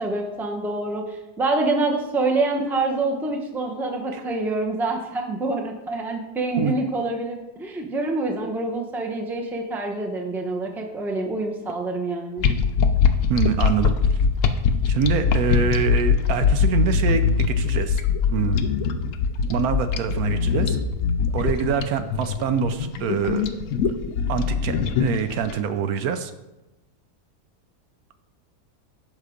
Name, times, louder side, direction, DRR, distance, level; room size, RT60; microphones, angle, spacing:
voice 1, 0.0-12.4, right 2 dB, ahead, 2 dB, 0.6 m, -26 dB
sound 1, 12.4-25.5, left 6 dB, 65° left, 0.9 m, -22 dB
voice 2, 13.3-14.0 14.9-18.0 18.3-18.6 19.5-20.8 21.3-23.4 24.3-26.3, right 7 dB, 75° right, 9 dB, 1.0 m, -25 dB
7.5 x 5.7 x 5.1 m, 1.0 s
omnidirectional pair, 1.7 m